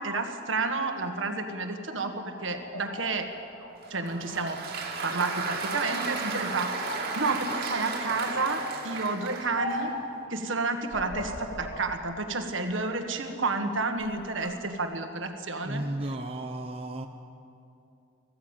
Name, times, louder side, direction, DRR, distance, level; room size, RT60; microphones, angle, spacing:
voice 1, 0.0-3.3 3.9-4.6 5.0-9.9 10.3-15.8, right 3 dB, 65° right, 5 dB, 1.7 m, -31 dB
sound 1, 1.8-5.0 5.4-6.2 6.6-7.3 8.3-8.8 9.6-10.1 10.8-11.9 12.4-13.3 13.8-14.5, left 1 dB, 90° left, 3.1 m, -39 dB
Applause, 3.8-10.0, right 4 dB, 50° right, 2.3 m, -34 dB
voice 2, 15.6-17.1, right 1 dB, 30° right, 3 dB, 0.9 m, -34 dB
20.5 x 15.0 x 9.0 m, 2.6 s
head